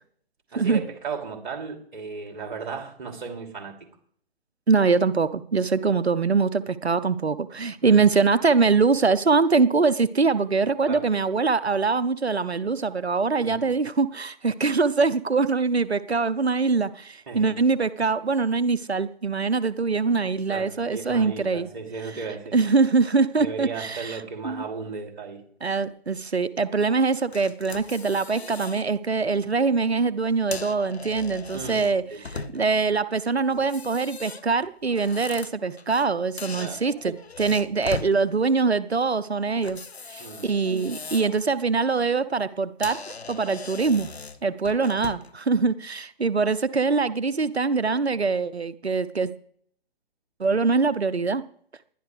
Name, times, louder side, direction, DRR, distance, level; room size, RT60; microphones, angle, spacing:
voice 1, 0.5-3.9 7.8-8.1 10.9-11.0 13.4-13.6 17.3-17.5 20.5-22.7 23.4-25.4 31.5-32.5 36.6-36.8 40.2-40.5 44.8-45.0, right 5 dB, 50° right, 4 dB, 2.9 m, -35 dB
voice 2, 4.7-21.7 22.5-24.2 24.4-24.6 25.6-39.8 40.1-43.0 43.3-44.1 44.4-49.3 50.4-51.4, right 4 dB, 90° right, 15 dB, 0.8 m, -23 dB
sound 1, 27.3-28.9 29.3-29.5 30.3-32.8 33.5-36.1 36.4-38.2 39.6-41.4 41.8-42.1 42.5-42.6 42.8-45.4, left 4 dB, 85° left, 0.9 m, -39 dB
20.5 x 12.0 x 3.3 m, 0.62 s
figure-of-eight pair, 135°, 31 cm